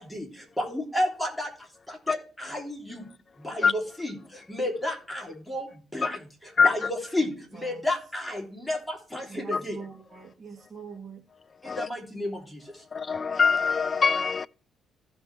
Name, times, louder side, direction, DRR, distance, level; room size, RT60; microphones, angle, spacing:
voice 1, 0.0-3.0 3.4-9.8 11.6-12.8, left 1 dB, 10° left, 3.1 m, -32 dB
voice 2, 7.2-7.8 9.3-11.2, right 5 dB, 25° right, 2.3 m, -43 dB
voice 3, 12.9-14.5, left 5 dB, 35° left, 0.3 m, -23 dB
15.0 x 5.2 x 3.3 m
cardioid pair, 90°, 0 cm